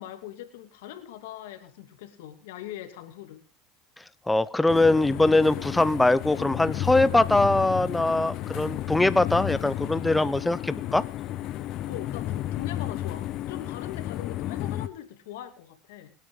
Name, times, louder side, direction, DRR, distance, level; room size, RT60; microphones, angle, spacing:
voice 1, 0.0-3.4 11.9-16.1, left 12 dB, 85° left, 7 dB, 2.6 m, -41 dB
voice 2, 4.3-11.0, left 2 dB, 10° left, 16 dB, 0.6 m, -22 dB
sound 1, 4.7-14.9, left 13 dB, 55° left, 0.8 m, -32 dB
27.0 x 9.3 x 3.8 m, 0.34 s
supercardioid pair, 105°, 0 cm